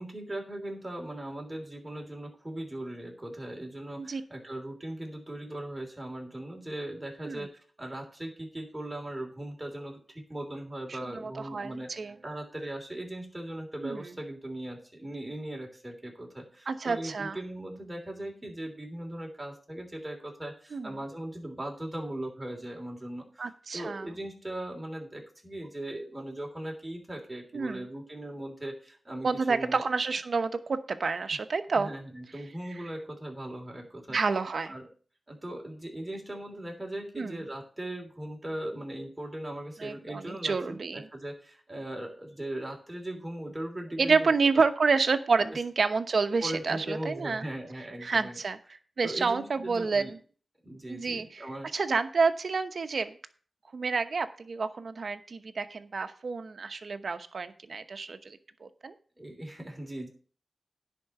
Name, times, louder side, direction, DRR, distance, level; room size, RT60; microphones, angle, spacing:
voice 1, 0.0-29.8 31.7-34.2 34.7-34.9 35.3-44.6 45.4-45.6 46.4-48.4 49.0-50.1 50.6-51.7 59.2-60.1, right 1 dB, 15° right, 0 dB, 3.3 m, -39 dB
voice 2, 10.9-12.1 13.8-14.1 16.7-17.4 20.7-20.9 23.4-24.1 27.5-27.8 29.2-31.9 34.1-34.7 37.2-37.4 39.8-41.1 44.0-47.4 48.0-48.6 49.0-50.2 50.9-53.1 53.7-58.9, right 4 dB, 65° right, 9 dB, 0.9 m, -29 dB
10.5 x 4.6 x 7.7 m, 0.41 s
wide cardioid pair, 70°, 0 cm